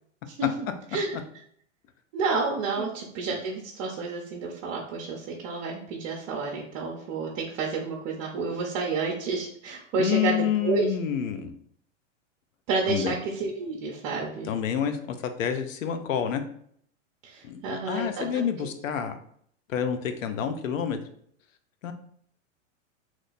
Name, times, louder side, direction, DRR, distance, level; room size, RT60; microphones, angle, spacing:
voice 1, 2.1-10.9 12.7-14.5 17.2-18.2 18.6-18.7, right 4 dB, 45° right, -1 dB, 0.7 m, -30 dB
voice 2, 10.0-11.5 12.9-13.1 14.5-16.4 17.4-19.2 19.7-21.0 21.8-21.9, left 8 dB, 85° left, 8 dB, 0.6 m, -28 dB
3.0 x 2.2 x 4.0 m, 0.65 s
hypercardioid pair, 115°, 38 cm